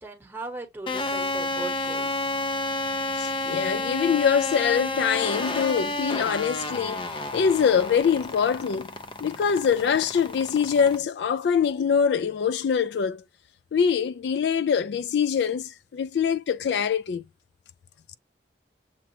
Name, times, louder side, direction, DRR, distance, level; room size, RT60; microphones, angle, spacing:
voice 1, 0.0-2.2, right 2 dB, 10° right, 1.1 m, -38 dB
sound 1, 0.9-11.0, left 2 dB, 30° left, 0.6 m, -31 dB
voice 2, 3.2-8.9 9.2-13.2 13.7-17.2, left 7 dB, 65° left, 0.3 m, -24 dB
6.9 x 2.4 x 2.7 m
head